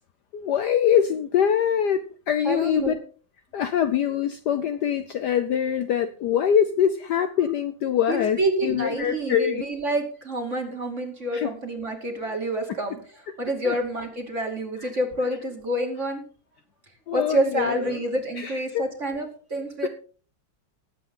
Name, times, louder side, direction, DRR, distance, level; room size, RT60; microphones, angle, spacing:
voice 1, 0.3-2.9 3.5-9.6 11.3-11.5 13.6-13.7 17.1-18.0 18.4-18.9 19.8-19.9, left 9 dB, 65° left, 10 dB, 1.1 m, -24 dB
voice 2, 2.4-3.0 7.3-7.4 8.1-16.2 17.1-19.9, right 1 dB, 35° right, 2 dB, 2.9 m, -28 dB
19.5 x 8.3 x 3.8 m, 0.41 s
omnidirectional pair, 2.3 m